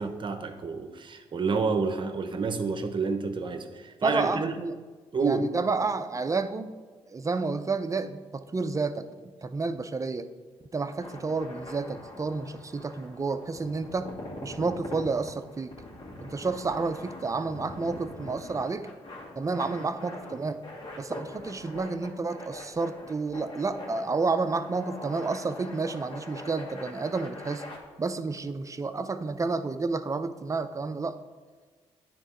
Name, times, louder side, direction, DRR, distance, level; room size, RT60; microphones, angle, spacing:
voice 1, 0.0-4.5 5.1-5.5, right 4 dB, 50° right, 7 dB, 0.9 m, -29 dB
voice 2, 4.0-4.8 5.2-6.7 7.1-10.3 10.7-14.1 14.4-15.8 16.2-18.9 19.4-20.6 21.0-27.6 28.0-31.2, right 4 dB, 30° right, 10 dB, 0.6 m, -30 dB
sound 1, 10.8-27.8, left 1 dB, 50° left, 2.3 m, -43 dB
9.7 x 3.7 x 4.6 m, 1.4 s
supercardioid pair, 60°, 11 cm